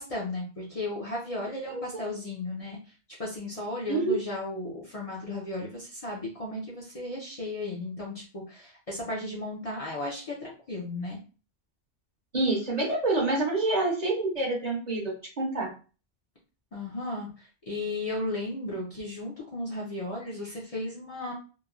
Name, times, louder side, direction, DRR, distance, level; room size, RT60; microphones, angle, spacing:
voice 1, 0.0-2.9 3.2-11.2 16.7-21.3, left 2 dB, 45° left, -4 dB, 0.6 m, -35 dB
voice 2, 12.3-15.7, right 2 dB, 45° right, -2 dB, 0.8 m, -27 dB
3.0 x 2.2 x 2.3 m, 0.35 s
omnidirectional pair, 1.1 m